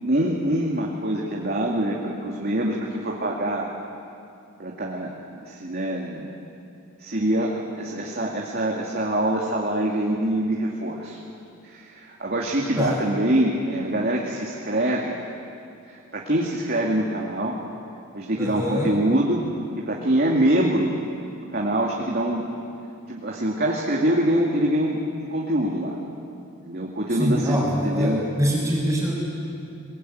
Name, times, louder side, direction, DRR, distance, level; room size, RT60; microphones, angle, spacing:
voice 1, 0.0-3.7 4.6-6.3 7.0-11.2 11.7-15.2 16.1-17.6 18.1-19.4 19.7-20.9 21.5-22.5 23.1-26.0 26.6-28.2, right 1 dB, 50° right, -2 dB, 2.4 m, -24 dB
voice 2, 18.4-18.9 27.2-29.1, equal, 10° right, -8 dB, 4.9 m, -24 dB
23.0 x 22.0 x 9.4 m, 2.5 s
head